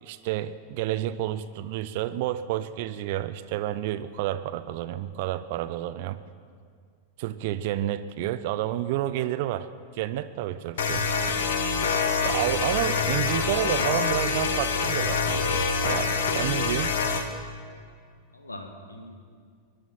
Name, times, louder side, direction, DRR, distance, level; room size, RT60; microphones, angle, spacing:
voice 1, 0.0-6.2 7.2-9.7 9.9-11.1 12.2-17.0, right 13 dB, 50° right, 12 dB, 0.5 m, -30 dB
sound 1, 10.8-17.3, left 5 dB, 60° left, 1.3 m, -26 dB
voice 2, 12.3-12.8 18.3-19.2, left 1 dB, 80° left, 5 dB, 1.5 m, -43 dB
21.5 x 11.5 x 5.8 m, 2.1 s
figure-of-eight pair, 90°, 0 cm